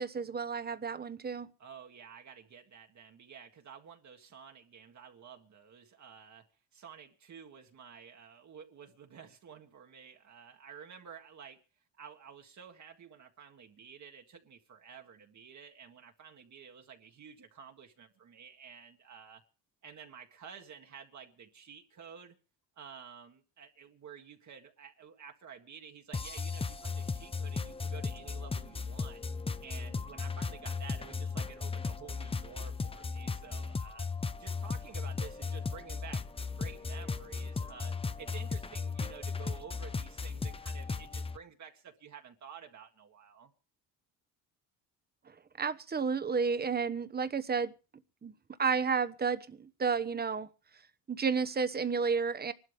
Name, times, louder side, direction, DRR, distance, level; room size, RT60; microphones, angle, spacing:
voice 1, 0.0-1.5 45.3-47.7 48.2-48.3 48.6-50.5 51.1-52.5, right 5 dB, 25° right, 1.1 m, -31 dB
voice 2, 1.6-6.5 6.7-11.6 12.0-19.4 19.8-22.4 22.8-29.2 29.6-34.1 34.4-43.5, right 7 dB, 45° right, 1.8 m, -51 dB
sound 1, 26.1-41.4, left 4 dB, 15° left, 0.7 m, -36 dB
24.5 x 12.5 x 3.6 m
supercardioid pair, 90°, 39 cm